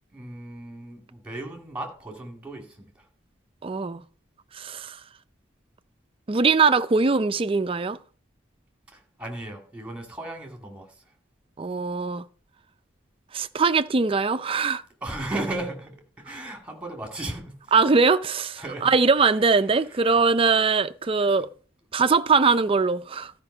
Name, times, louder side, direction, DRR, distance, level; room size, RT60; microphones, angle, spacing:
voice 1, 0.1-3.1 8.9-11.0 15.0-17.7 18.6-19.1 19.6-20.2, right 2 dB, 5° right, 2.2 m, -36 dB
voice 2, 3.6-4.0 4.5-5.0 6.3-8.0 11.6-12.2 13.3-14.8 17.7-21.5 21.9-23.3, right 4 dB, 30° right, 0.4 m, -21 dB
13.0 x 5.2 x 5.5 m
head